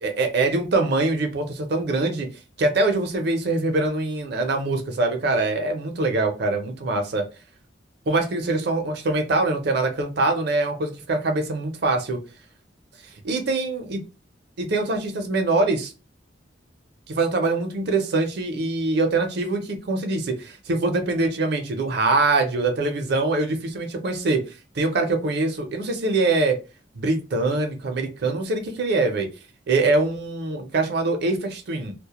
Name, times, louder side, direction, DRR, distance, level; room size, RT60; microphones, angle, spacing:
voice 1, 0.0-2.3 2.6-7.3 8.1-12.2 13.2-14.0 14.6-15.9 17.1-24.4 24.7-26.6 26.9-29.3 29.7-31.9, right 2 dB, 65° right, 5 dB, 0.6 m, -23 dB
2.2 x 2.1 x 2.8 m, 0.31 s
head